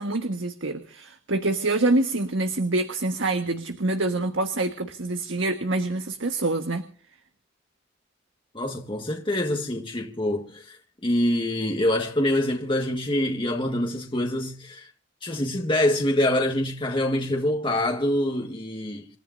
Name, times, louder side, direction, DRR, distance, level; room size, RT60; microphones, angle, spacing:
voice 1, 0.0-6.8, right 2 dB, 85° right, 1.5 m, -26 dB
voice 2, 8.5-14.9 15.2-19.1, left 1 dB, 25° left, 1.6 m, -25 dB
28.5 x 14.0 x 2.7 m
head